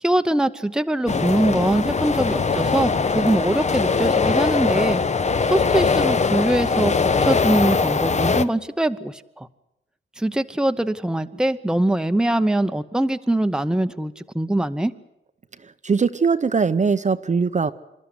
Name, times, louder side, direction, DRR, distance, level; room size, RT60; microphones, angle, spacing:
voice 1, 0.0-5.0 5.5-6.9 7.2-9.5 10.2-14.9, right 1 dB, 5° right, 9 dB, 0.8 m, -22 dB
sound 1, 1.1-8.4, left 4 dB, 35° left, 0.8 m, -21 dB
voice 2, 15.6-17.7, right 5 dB, 35° right, 10 dB, 0.7 m, -21 dB
26.5 x 13.0 x 9.6 m, 0.93 s
wide cardioid pair, 105°, 21 cm